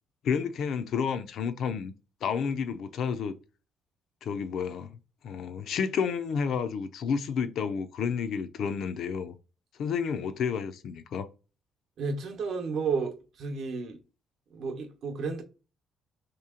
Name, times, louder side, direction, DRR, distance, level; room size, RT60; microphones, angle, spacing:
voice 1, 0.2-1.9 2.2-3.3 4.2-4.9 5.2-9.3 9.8-11.3, left 6 dB, 65° left, 0.4 m, -30 dB
voice 2, 12.0-14.0 14.5-15.4, right 5 dB, 60° right, 0.8 m, -32 dB
2.9 x 2.7 x 3.6 m
cardioid pair, 125°, 0 cm